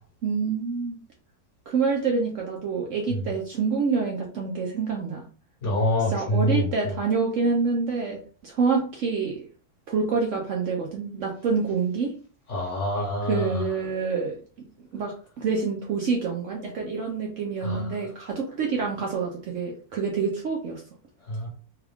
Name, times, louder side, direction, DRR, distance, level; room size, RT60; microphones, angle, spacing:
voice 1, 0.2-1.0 1.7-5.2 6.1-9.4 9.9-12.1 13.3-14.4 14.9-20.8, right 5 dB, 65° right, 0 dB, 0.9 m, -27 dB
voice 2, 5.6-6.7 12.5-13.6 17.6-18.0 21.3-21.5, equal, 55° left, -2 dB, 1.1 m, -26 dB
3.5 x 2.3 x 3.4 m, 0.41 s
omnidirectional pair, 1.6 m